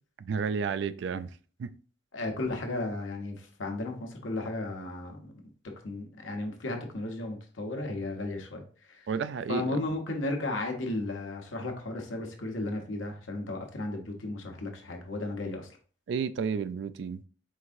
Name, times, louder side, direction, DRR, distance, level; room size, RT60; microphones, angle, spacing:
voice 1, 0.2-1.3 1.6-1.7 9.1-9.8 16.1-17.2, right 6 dB, 65° right, 0.3 m, -31 dB
voice 2, 2.1-5.4 5.8-9.1 9.5-15.7, left 2 dB, 90° left, 1.0 m, -34 dB
4.7 x 3.6 x 2.5 m
head